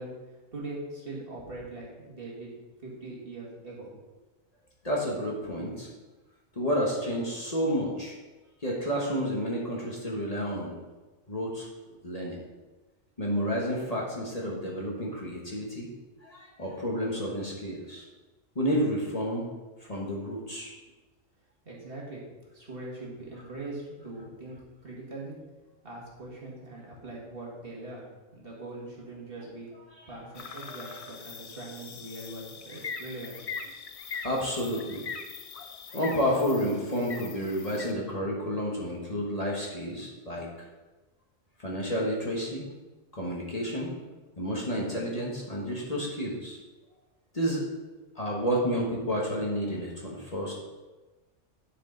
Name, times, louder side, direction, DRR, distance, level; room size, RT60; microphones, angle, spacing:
voice 1, 0.0-2.5 2.8-3.9 21.6-22.2 22.5-24.6 24.8-25.4 25.8-29.7 30.1-33.4, right 2 dB, 50° right, -4 dB, 2.1 m, -41 dB
voice 2, 4.8-5.9 6.5-8.1 8.6-10.7 11.3-11.7 12.0-12.4 13.2-15.9 16.2-18.0 18.5-19.4 19.8-20.7 30.0-30.1 30.5-31.0 34.2-35.0 35.9-40.5 41.6-42.6 43.1-43.9 44.4-46.6 47.3-47.6 48.1-50.5, equal, 30° left, -4 dB, 1.4 m, -30 dB
sound 1, 30.3-37.9, left 5 dB, 60° left, 0.3 m, -41 dB
10.5 x 5.0 x 3.9 m, 1.2 s
omnidirectional pair, 1.3 m